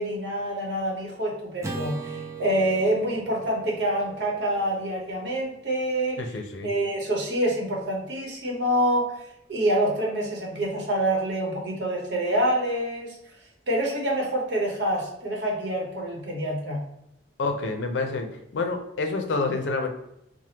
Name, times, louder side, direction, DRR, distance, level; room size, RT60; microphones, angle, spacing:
voice 1, 0.0-6.2 6.6-9.2 9.5-13.1 13.7-16.8, right 1 dB, 65° right, -2 dB, 0.9 m, -26 dB
Acoustic guitar / Strum, 1.6-6.0, right 4 dB, 15° right, 0.3 m, -39 dB
voice 2, 6.2-6.7 17.4-19.9, left 3 dB, 75° left, 4 dB, 0.5 m, -28 dB
3.3 x 2.1 x 2.8 m, 0.79 s
head